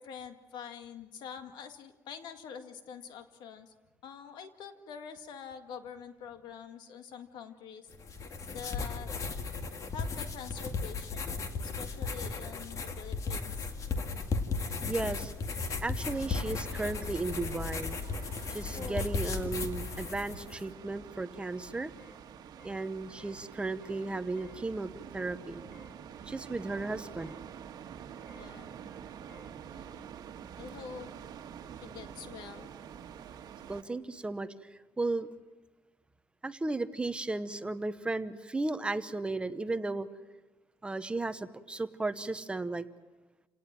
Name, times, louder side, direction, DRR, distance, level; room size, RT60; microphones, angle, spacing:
voice 1, 0.0-3.7 4.0-7.9 8.5-9.1 9.9-13.7 18.7-19.1 28.4-28.7 29.7-30.2 30.6-31.1 31.8-32.7, left 7 dB, 85° left, 8 dB, 2.0 m, -46 dB
sound 1, 7.9-20.6, left 4 dB, 45° left, 2.1 m, -36 dB
voice 2, 14.9-15.3 15.8-18.0 18.5-21.9 22.6-25.6 26.3-27.3 33.7-34.5 35.0-35.3 36.4-40.1 40.8-42.8, right 2 dB, 15° right, 11 dB, 0.9 m, -35 dB
sound 2, 16.0-33.8, right 8 dB, 65° right, 1.6 m, -47 dB
sound 3, 22.0-22.2 22.6-22.8 23.2-23.4 23.8-24.1 24.4-24.6 25.7-26.0 27.2-27.4 28.3-28.5 29.3-29.5, left 2 dB, 15° left, 6.5 m, -57 dB
29.0 x 18.5 x 7.6 m, 1.1 s
cardioid pair, 140°, 7 cm